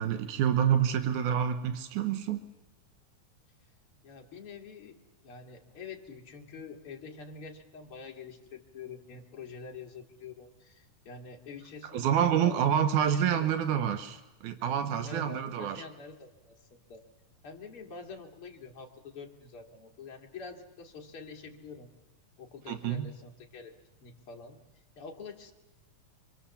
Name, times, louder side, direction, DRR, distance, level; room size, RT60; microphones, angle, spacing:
voice 1, 0.0-2.4 11.9-15.8 22.7-23.1, right 9 dB, 90° right, 9 dB, 2.6 m, -28 dB
voice 2, 4.0-5.0 5.2-12.7 13.1-13.8 15.0-17.0 17.4-21.9 22.4-23.7 24.0-24.6 25.0-25.5, left 5 dB, 45° left, 2 dB, 3.1 m, -46 dB
26.0 x 25.5 x 7.2 m, 1.1 s
omnidirectional pair, 3.4 m